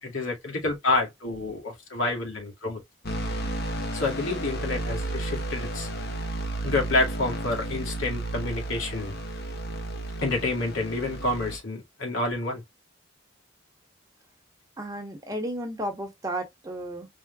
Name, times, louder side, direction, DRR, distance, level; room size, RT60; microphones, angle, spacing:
voice 1, 0.0-2.8 3.9-5.9 6.6-9.1 10.2-12.6, left 2 dB, 70° left, 2.3 m, -28 dB
sound 1, 3.0-11.6, right 1 dB, 50° left, 1.1 m, -32 dB
voice 2, 14.8-17.1, right 1 dB, 15° right, 1.3 m, -33 dB
4.8 x 3.9 x 2.4 m
head